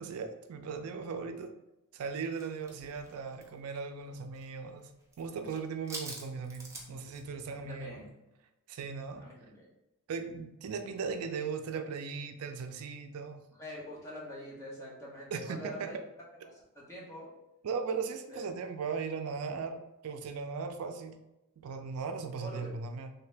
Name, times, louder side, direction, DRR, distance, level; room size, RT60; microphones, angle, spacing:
voice 1, 0.0-1.5 1.9-4.9 5.2-8.0 8.7-9.3 10.1-13.4 15.3-15.9 17.6-21.2 21.6-23.1, right 5 dB, 80° right, 7 dB, 0.4 m, -38 dB
sound 1, 2.3-4.5 4.7-5.2 5.5-7.2, right 2 dB, 15° right, 0.5 m, -46 dB
voice 2, 7.5-8.1 9.2-9.7 13.6-16.0 16.4-17.3 18.3-18.4 22.4-22.7, left 1 dB, 15° left, -6 dB, 0.9 m, -45 dB
3.2 x 2.8 x 3.3 m, 0.93 s
head